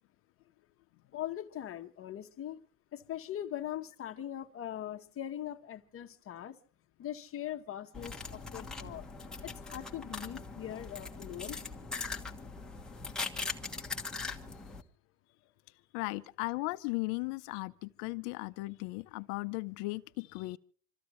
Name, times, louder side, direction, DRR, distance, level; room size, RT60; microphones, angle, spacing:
voice 1, 1.1-2.7 2.9-6.6 7.0-9.1 9.4-11.6, left 11 dB, 30° left, 1.1 m, -41 dB
sound 1, 7.9-14.8, left 4 dB, ahead, 1.3 m, -41 dB
voice 2, 15.9-20.6, left 24 dB, 60° left, 0.7 m, -36 dB
27.0 x 14.5 x 3.0 m
supercardioid pair, 135°, 46 cm